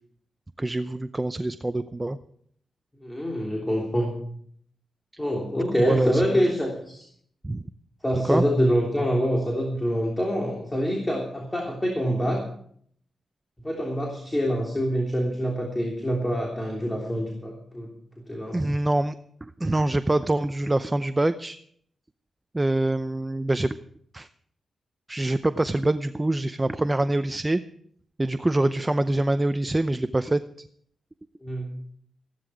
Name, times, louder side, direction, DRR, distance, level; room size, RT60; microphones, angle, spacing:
voice 1, 0.6-2.2 5.8-6.2 7.4-7.6 8.2-8.4 18.5-19.1 19.4-21.6 22.5-23.8 24.1-24.3 25.1-27.6 28.2-30.7, right 2 dB, 20° right, 11 dB, 0.6 m, -25 dB
voice 2, 2.9-4.1 5.2-7.1 8.0-12.4 13.6-17.9 18.3-18.6 28.6-28.7 31.4-31.8, equal, 15° left, -1 dB, 3.3 m, -26 dB
15.0 x 11.5 x 4.9 m, 0.64 s
cardioid pair, 75°, 0 cm